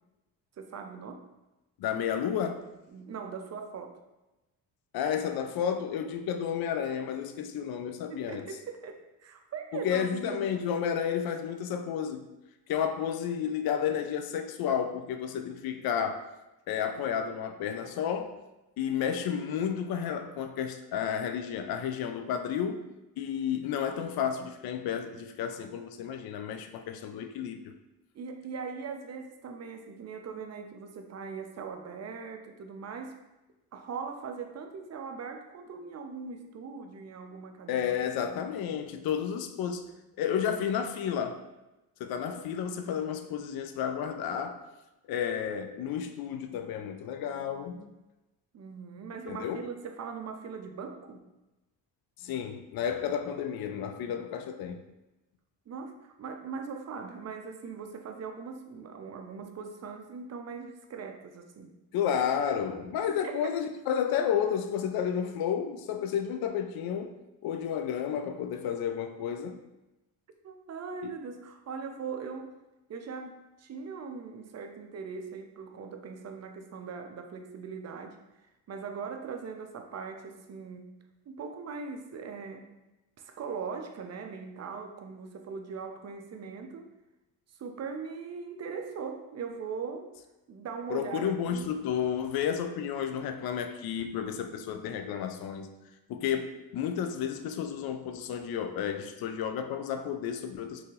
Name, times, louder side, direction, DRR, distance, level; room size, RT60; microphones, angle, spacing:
voice 1, 0.6-1.2 2.9-4.0 8.1-10.5 28.1-33.1 33.7-38.0 38.2-38.4 48.5-51.3 55.7-61.7 63.2-63.4 70.4-72.5 72.9-78.2 78.7-80.9 81.3-82.7 83.2-86.9 87.6-90.1 90.5-91.7, right 5 dB, 35° right, 5 dB, 0.5 m, -40 dB
voice 2, 1.8-2.6 4.9-8.5 9.7-12.3 12.7-16.2 16.7-18.4 18.8-22.8 23.2-27.6 37.7-39.8 40.2-41.4 42.0-44.6 45.1-47.9 49.3-49.6 52.2-54.8 61.9-67.1 67.4-69.5 90.9-95.7 96.1-100.8, left 8 dB, 50° left, 7 dB, 0.5 m, -31 dB
3.6 x 2.3 x 2.8 m, 1.0 s
hypercardioid pair, 45°, 49 cm